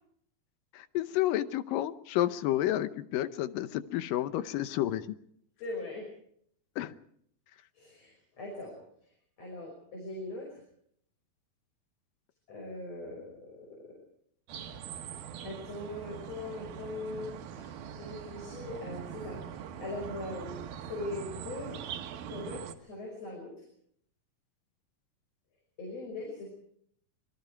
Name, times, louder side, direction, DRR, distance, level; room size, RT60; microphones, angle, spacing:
voice 1, 0.7-5.1 6.8-6.9, left 13 dB, 75° left, 12 dB, 2.5 m, -30 dB
voice 2, 5.6-6.0 7.7-8.8 9.4-10.5 12.5-14.0 15.4-20.6 20.9-21.8 22.3-23.5 25.8-26.5, left 2 dB, 45° left, 0 dB, 6.6 m, -41 dB
sound 1, 14.5-22.7, right 8 dB, 85° right, 3.1 m, -42 dB
26.5 x 21.5 x 4.6 m, 0.67 s
omnidirectional pair, 4.1 m